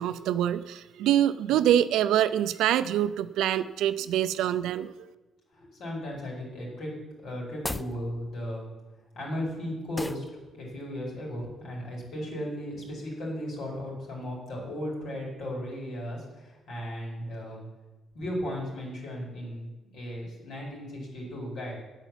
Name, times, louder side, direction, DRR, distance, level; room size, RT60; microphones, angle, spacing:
voice 1, 0.0-4.9, right 11 dB, 90° right, 13 dB, 0.5 m, -25 dB
voice 2, 5.5-6.9 7.2-8.7 9.1-10.2 10.5-17.6 18.1-21.8, equal, 80° left, -3 dB, 4.8 m, -36 dB
sound 1, 7.5-8.0 10.0-10.3, left 2 dB, 15° left, 0.4 m, -35 dB
9.2 x 8.2 x 7.5 m, 1.1 s
cardioid pair, 90°, 0 cm